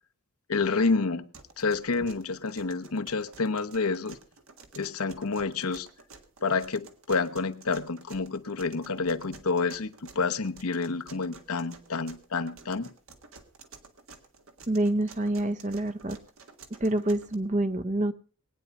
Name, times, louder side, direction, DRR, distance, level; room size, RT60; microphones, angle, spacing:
voice 1, 0.5-1.3 1.6-4.2 4.8-5.9 6.4-12.9, left 4 dB, 85° left, 8 dB, 1.0 m, -29 dB
sound 1, 1.3-17.4, right 4 dB, 70° right, 1.7 m, -51 dB
voice 2, 14.7-16.2 16.8-18.1, right 1 dB, 35° right, 12 dB, 0.8 m, -27 dB
20.0 x 9.4 x 5.3 m, 0.40 s
head